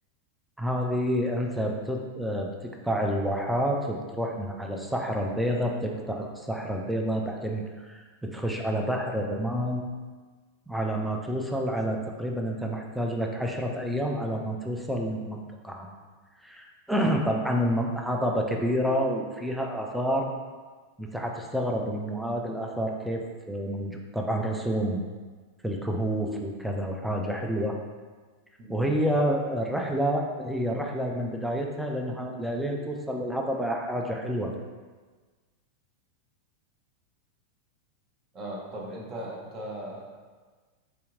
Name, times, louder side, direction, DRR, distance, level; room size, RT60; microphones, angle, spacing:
voice 1, 0.6-9.8 10.7-15.9 16.4-20.3 21.0-25.0 25.6-27.8 28.7-34.6, equal, ahead, 1 dB, 0.4 m, -29 dB
voice 2, 28.6-28.9 38.3-40.2, right 1 dB, 30° right, -2 dB, 0.8 m, -38 dB
3.4 x 2.8 x 3.7 m, 1.4 s
figure-of-eight pair, 90°, 0 cm